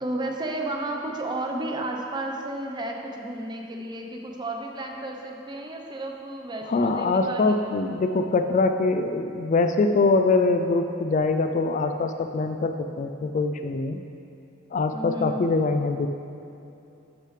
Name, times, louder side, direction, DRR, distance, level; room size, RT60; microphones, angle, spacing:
voice 1, 0.0-7.8 14.9-15.5, right 1 dB, 20° right, 2 dB, 0.7 m, -32 dB
voice 2, 6.7-14.0 14.7-16.1, left 3 dB, 40° left, 7 dB, 0.3 m, -23 dB
11.0 x 6.7 x 3.3 m, 2.7 s
head